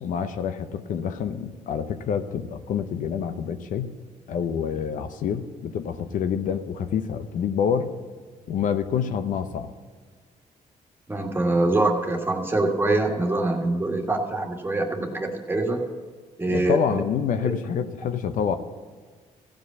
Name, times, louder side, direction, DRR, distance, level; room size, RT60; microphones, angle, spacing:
voice 1, 0.0-3.9 4.3-7.9 8.5-9.7 16.5-18.6, left 7 dB, 75° left, 9 dB, 0.7 m, -27 dB
voice 2, 11.1-15.8 16.4-17.0 17.4-17.5, right 2 dB, 15° right, 2 dB, 1.6 m, -24 dB
15.0 x 5.1 x 8.1 m, 1.5 s
cardioid pair, 100°, 14 cm